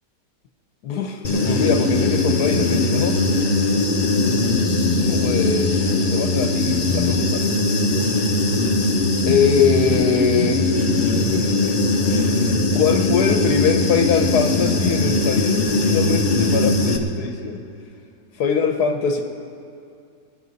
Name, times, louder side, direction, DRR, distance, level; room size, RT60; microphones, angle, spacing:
voice 1, 0.8-3.2 5.0-5.8 6.1-7.5 9.2-10.7 11.1-11.7 12.1-17.6 18.4-19.2, left 6 dB, 80° left, 5 dB, 1.4 m, -23 dB
Human voice / Buzz, 1.2-17.0, left 2 dB, 35° left, 1.1 m, -20 dB
25.5 x 10.0 x 4.1 m, 2.5 s
omnidirectional pair, 1.7 m